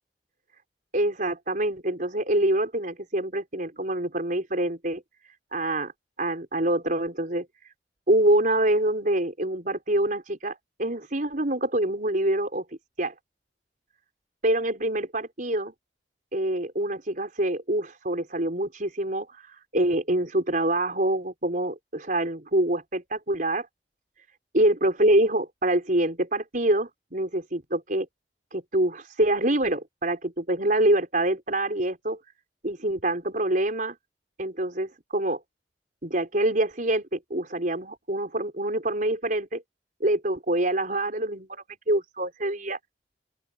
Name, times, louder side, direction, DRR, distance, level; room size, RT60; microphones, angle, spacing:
voice 1, 0.9-5.0 5.5-5.9 6.2-7.5 8.1-12.6 13.0-13.1 14.4-15.7 16.3-23.7 24.5-28.1 28.5-32.2 32.6-34.0 34.4-35.4 36.0-39.6 40.0-42.8, right 1 dB, 50° right, 5.1 m, -25 dB
open air
head